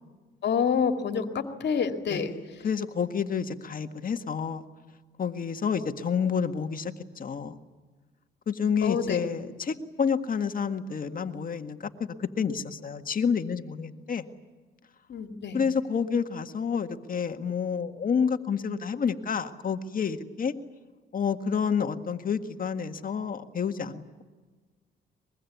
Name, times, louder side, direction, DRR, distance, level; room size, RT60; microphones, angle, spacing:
voice 1, 0.4-2.3 8.8-9.2 15.1-15.6, left 6 dB, 60° left, 6 dB, 2.4 m, -27 dB
voice 2, 2.6-4.6 5.2-7.6 8.5-14.3 15.5-20.5 21.1-24.2, left 6 dB, 45° left, 7 dB, 1.8 m, -29 dB
23.5 x 22.5 x 9.5 m, 1.4 s
cardioid pair, 90°, 20 cm